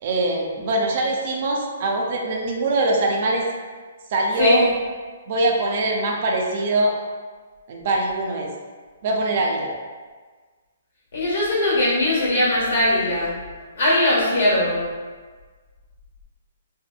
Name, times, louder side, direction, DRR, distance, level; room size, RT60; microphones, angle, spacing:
voice 1, 0.0-3.5 4.1-4.6 5.3-6.9 7.7-8.5 9.0-9.7, right 2 dB, 50° right, 0 dB, 0.4 m, -22 dB
voice 2, 11.1-13.4 13.7-14.8, left 1 dB, 70° left, -6 dB, 1.1 m, -20 dB
2.7 x 2.1 x 2.4 m, 1.4 s
hypercardioid pair, 140°, 0 cm